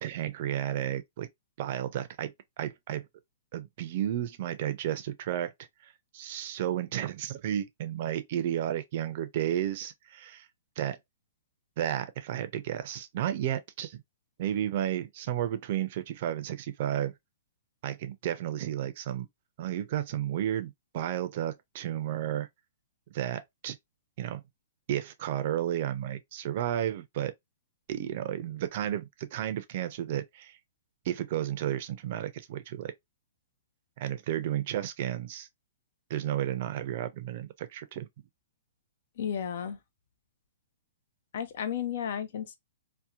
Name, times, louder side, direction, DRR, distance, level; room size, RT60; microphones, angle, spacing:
voice 1, 0.0-1.3 1.6-3.1 3.5-5.5 5.8-10.5 10.8-11.0 11.8-14.0 14.4-17.1 17.8-19.3 19.6-22.5 23.1-23.8 24.2-24.4 24.9-27.3 27.9-30.6 31.1-32.9 34.0-35.5 36.1-38.1, right 11 dB, 50° right, 0.4 m, -32 dB
voice 2, 39.2-39.8 41.3-42.6, left 8 dB, 65° left, 0.4 m, -33 dB
2.7 x 2.1 x 2.3 m
hypercardioid pair, 135°, 0 cm